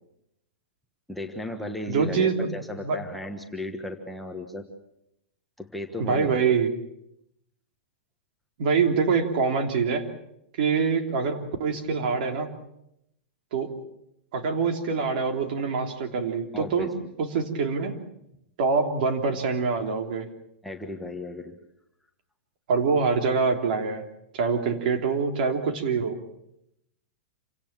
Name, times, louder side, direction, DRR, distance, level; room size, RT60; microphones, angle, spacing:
voice 1, 1.1-4.7 5.6-6.4 16.5-16.9 20.6-21.6, left 1 dB, ahead, 1 dB, 1.3 m, -35 dB
voice 2, 1.9-3.0 6.0-6.7 8.6-10.1 10.6-12.5 13.5-13.7 14.3-16.9 17.2-17.9 18.6-20.3 22.7-24.0 24.3-26.2, right 5 dB, 50° right, 5 dB, 3.3 m, -25 dB
28.0 x 17.5 x 7.4 m, 0.80 s
supercardioid pair, 165°, 6 cm